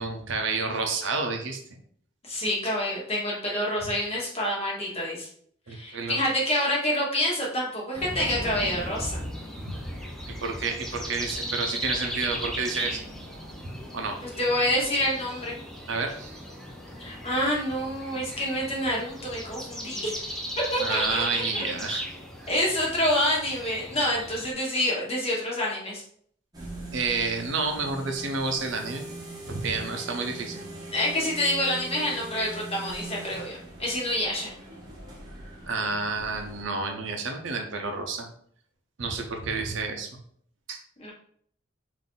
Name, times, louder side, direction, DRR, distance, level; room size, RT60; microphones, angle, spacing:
voice 1, 0.0-1.8 5.7-6.2 9.6-9.8 10.3-13.0 13.6-14.2 15.9-16.4 20.8-22.0 26.9-29.0 29.4-30.6 35.7-38.3 39.0-40.1 40.7-40.8, right 4 dB, 70° right, 4 dB, 0.6 m, -30 dB
voice 2, 2.2-5.3 5.7-9.2 14.2-15.5 17.0-20.2 20.7-21.7 22.5-26.0 30.9-34.5 41.0-41.1, left 1 dB, 30° left, -3 dB, 1.2 m, -27 dB
sound 1, 7.9-24.5, equal, ahead, 0.5 m, -36 dB
sound 2, 26.5-36.6, right 2 dB, 20° right, 0.9 m, -41 dB
3.9 x 2.6 x 3.6 m, 0.62 s
head